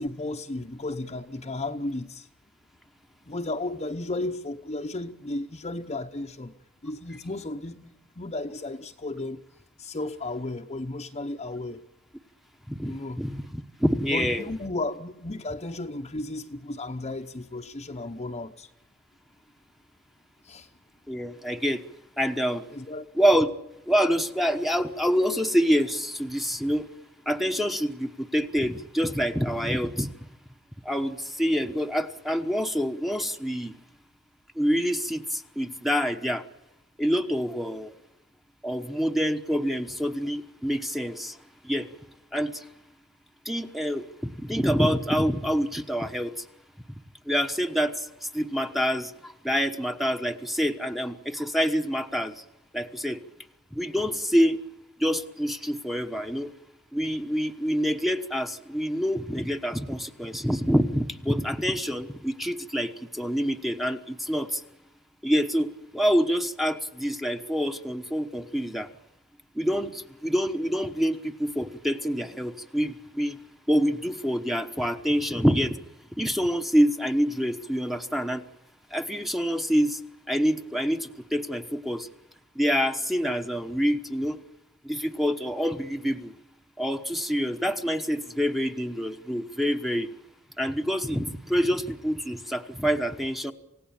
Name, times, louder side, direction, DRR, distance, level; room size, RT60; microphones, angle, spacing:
voice 1, 0.0-2.3 3.2-6.5 6.8-9.4 9.8-11.8 12.8-13.2 14.1-18.7 20.4-20.7 22.7-23.1, left 2 dB, 30° left, 0.9 m, -34 dB
voice 2, 12.7-14.5 21.1-21.8 22.2-22.7 23.1-23.5 23.9-26.9 27.3-30.1 30.8-33.7 34.5-36.4 37.0-37.9 38.6-41.4 41.6-41.9 42.3-42.7 43.4-46.5 47.3-52.4 52.7-53.2 53.7-54.6 55.0-56.5 56.9-64.6 65.2-68.9 69.5-73.4 73.7-75.8 76.2-78.4 78.9-80.0 80.3-82.1 82.5-84.4 84.8-86.3 86.8-90.1 90.6-93.5, equal, ahead, 1.1 m, -26 dB
28.0 x 17.0 x 8.8 m
head